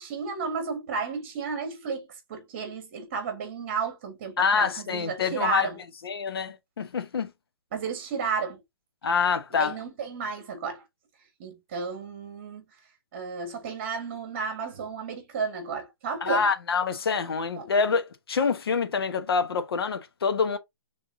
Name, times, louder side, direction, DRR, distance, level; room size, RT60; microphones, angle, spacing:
voice 1, 0.0-5.8 7.7-8.6 9.5-10.8 11.4-12.6 13.1-16.5 17.6-17.7, right 5 dB, 30° right, 1.6 m, -32 dB
voice 2, 4.4-5.7 6.0-7.3 9.0-9.7 16.2-20.6, left 5 dB, 75° left, 1.1 m, -26 dB
5.4 x 3.5 x 2.7 m
hypercardioid pair, 175°, 13 cm